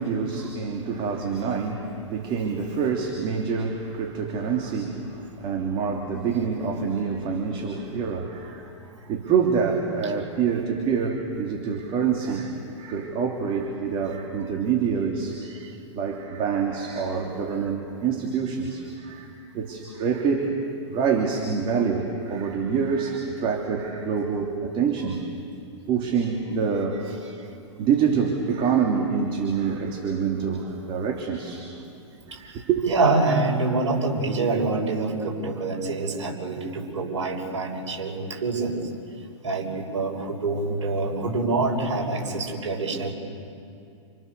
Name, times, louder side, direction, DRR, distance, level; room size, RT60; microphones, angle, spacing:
voice 1, 0.0-8.7 9.1-15.4 15.9-20.6 20.9-25.2 25.9-27.2 27.8-31.6 32.3-32.8, right 6 dB, 35° right, 1 dB, 3.2 m, -26 dB
voice 2, 32.3-38.8 39.4-43.1, right 3 dB, 70° right, 0 dB, 6.0 m, -26 dB
28.5 x 28.0 x 7.0 m, 2.4 s
hypercardioid pair, 110°, 16 cm